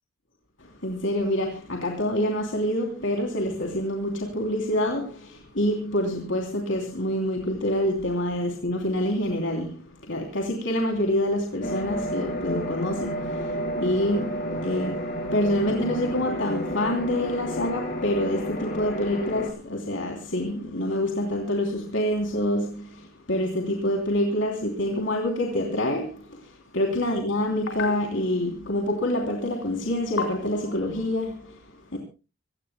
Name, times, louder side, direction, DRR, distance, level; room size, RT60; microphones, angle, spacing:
voice 1, 0.6-32.0, left 1 dB, 70° left, 3.1 m, -27 dB
sound 1, 11.6-19.5, equal, 50° left, 4.1 m, -31 dB
25.5 x 18.0 x 2.2 m
head